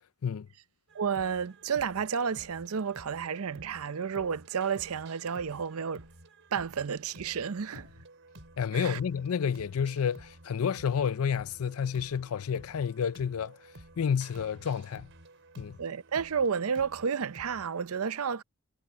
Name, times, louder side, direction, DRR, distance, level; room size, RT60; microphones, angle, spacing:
sound 1, 0.9-17.9, right 1 dB, 60° right, 4.9 m, -53 dB
voice 1, 0.9-6.0 6.5-7.9 8.7-9.0 15.8-18.4, right 6 dB, 80° right, 0.6 m, -31 dB
voice 2, 8.6-13.6 14.0-15.1 15.6-15.8, left 7 dB, 75° left, 0.4 m, -30 dB
head